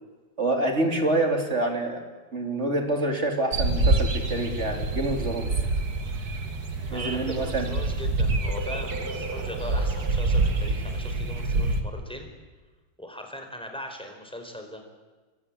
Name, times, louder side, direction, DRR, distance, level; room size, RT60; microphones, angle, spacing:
voice 1, 0.4-2.0 2.3-5.5 6.9-7.7, right 2 dB, 35° right, 4 dB, 3.7 m, -26 dB
sound 1, 3.5-11.8, right 2 dB, 55° right, 2.6 m, -26 dB
voice 2, 6.9-12.3 13.0-14.8, left 1 dB, 5° left, 4 dB, 4.4 m, -40 dB
26.0 x 24.0 x 8.7 m, 1.3 s
omnidirectional pair, 2.1 m